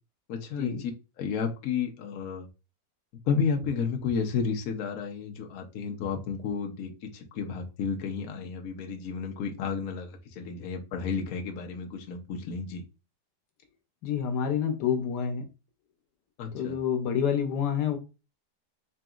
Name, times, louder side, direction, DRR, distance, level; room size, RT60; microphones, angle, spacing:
voice 1, 0.3-0.9 1.2-2.5 3.2-12.8 16.4-16.7, left 6 dB, 65° left, 3 dB, 1.1 m, -32 dB
voice 2, 14.0-15.5 16.5-18.0, left 8 dB, 90° left, 4 dB, 1.4 m, -28 dB
3.9 x 3.6 x 2.3 m, 0.29 s
omnidirectional pair, 1.8 m